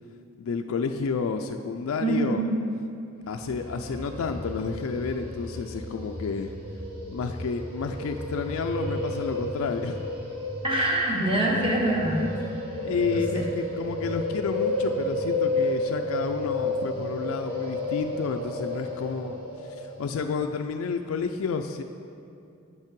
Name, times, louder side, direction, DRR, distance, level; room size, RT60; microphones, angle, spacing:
voice 1, 0.4-2.4 3.3-6.5 7.1-10.0 12.8-19.4 19.6-21.8, left 5 dB, 85° left, 5 dB, 0.4 m, -30 dB
voice 2, 2.0-2.5 10.6-12.3 13.1-13.4, right 1 dB, 25° right, -2 dB, 1.1 m, -25 dB
sound 1, 3.4-20.3, left 1 dB, 90° right, 1.3 m, -32 dB
8.0 x 5.4 x 5.2 m, 2.6 s
head